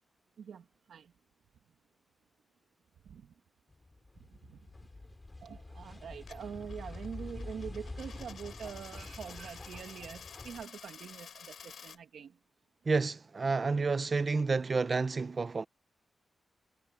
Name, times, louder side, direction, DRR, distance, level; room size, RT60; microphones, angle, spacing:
voice 1, 0.4-1.1 3.0-3.3 4.3-4.6 5.4-12.4, right 7 dB, 90° right, 2.2 m, -45 dB
sound 1, 3.7-10.6, left 2 dB, 20° left, 4.1 m, -46 dB
Coin (dropping), 6.2-12.0, left 7 dB, 70° left, 4.2 m, -51 dB
voice 2, 12.9-15.7, right 4 dB, 35° right, 0.7 m, -30 dB
wide cardioid pair, 130°, 0 cm